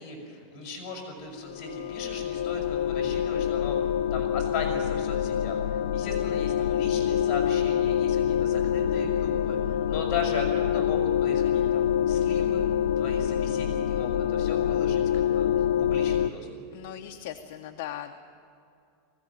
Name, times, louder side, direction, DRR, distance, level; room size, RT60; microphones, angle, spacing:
voice 1, 0.0-3.8 4.1-5.6 5.9-12.7 13.0-15.5 15.8-16.5, left 4 dB, 30° left, 1 dB, 6.2 m, -37 dB
sound 1, 1.4-16.3, left 10 dB, 80° left, 0.7 m, -26 dB
voice 2, 6.0-6.3 16.7-18.1, left 11 dB, 50° left, 3 dB, 1.0 m, -39 dB
20.0 x 17.0 x 9.6 m, 2.5 s
supercardioid pair, 175°, 0 cm